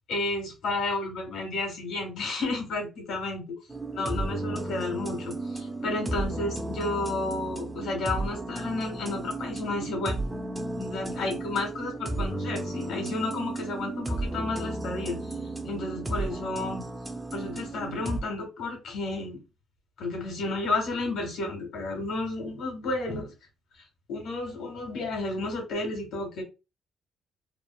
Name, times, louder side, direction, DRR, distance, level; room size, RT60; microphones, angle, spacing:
voice 1, 0.1-3.4 3.9-10.2 10.8-15.2 15.6-16.8 17.3-19.4 20.0-23.3 24.1-26.4, left 2 dB, 75° left, 1.3 m, -32 dB
sound 1, 3.7-18.2, right 2 dB, 10° right, 0.4 m, -34 dB
3.0 x 2.0 x 2.2 m
cardioid pair, 130°, 0 cm